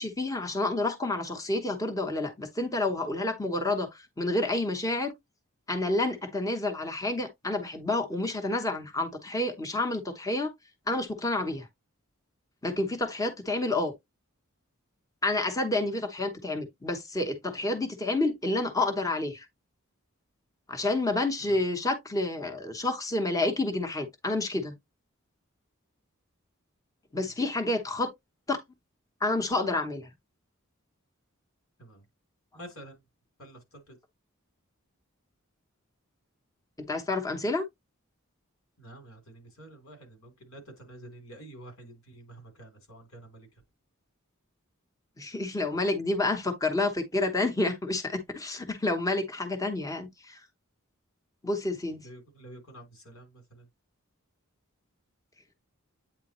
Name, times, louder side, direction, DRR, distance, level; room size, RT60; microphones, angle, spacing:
voice 1, 0.0-3.9 4.2-5.1 5.7-10.5 10.9-11.7 12.6-13.9 15.2-19.4 20.7-24.7 27.1-28.1 28.5-28.6 29.2-30.1 36.9-37.6 45.2-50.4 51.4-52.0, left 2 dB, 15° left, 1.0 m, -29 dB
voice 2, 32.5-33.0 33.4-33.9 38.8-43.5 52.0-53.6, right 1 dB, 85° left, 3.5 m, -49 dB
8.7 x 3.6 x 3.0 m
head